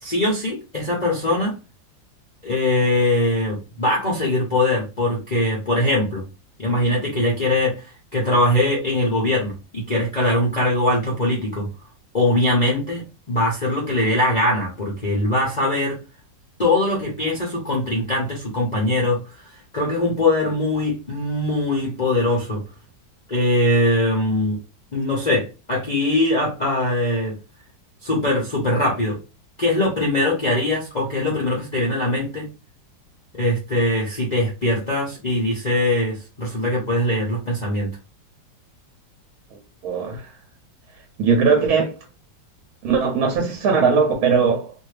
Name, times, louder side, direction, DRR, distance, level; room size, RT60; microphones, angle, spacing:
voice 1, 0.0-1.5 2.4-6.2 6.6-7.8 8.1-11.7 12.1-16.0 16.6-22.6 23.3-24.6 24.9-27.3 28.0-29.2 29.6-32.5 33.3-37.9, left 1 dB, 60° left, 0.4 m, -21 dB
voice 2, 39.5-40.3 41.2-42.0 42.8-44.7, right 5 dB, 65° right, 1.0 m, -20 dB
2.6 x 2.6 x 3.2 m
omnidirectional pair, 2.0 m